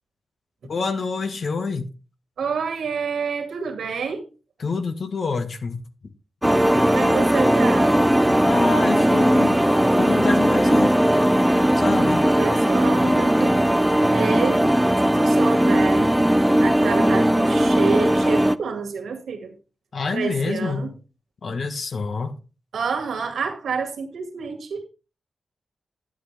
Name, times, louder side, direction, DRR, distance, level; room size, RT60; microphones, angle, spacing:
voice 1, 0.6-1.9 4.6-5.8 8.4-9.6 10.0-11.0 11.7-12.3 14.0-14.1 19.9-20.9 21.4-22.3, left 4 dB, 65° left, 1.4 m, -26 dB
voice 2, 2.4-4.2 6.9-7.9 12.4-13.7 14.1-14.6 15.1-16.1 16.6-19.5 20.1-20.9 22.7-24.8, right 5 dB, 90° right, 2.1 m, -28 dB
sound 1, 6.4-18.6, equal, 5° right, 0.4 m, -18 dB
11.5 x 7.8 x 3.4 m
cardioid pair, 75°, 0 cm